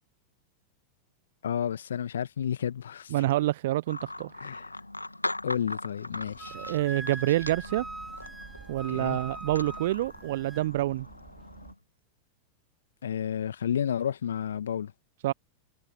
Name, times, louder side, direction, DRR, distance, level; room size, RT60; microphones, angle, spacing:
voice 1, 1.4-3.1 4.4-4.7 5.4-6.5 8.9-9.2 13.0-14.9, left 9 dB, 65° left, 1.5 m, -31 dB
voice 2, 3.1-4.3 6.5-7.8 8.7-11.1 15.2-15.3, right 15 dB, 55° right, 0.4 m, -27 dB
sound 1, 3.9-11.7, left 2 dB, 85° left, 1.9 m, -40 dB
sound 2, 6.1-11.7, right 8 dB, 25° right, 2.5 m, -52 dB
Wind instrument woodwind instrument, 6.4-10.7, right 2 dB, 5° right, 2.2 m, -42 dB
figure-of-eight pair, 90°, 0 cm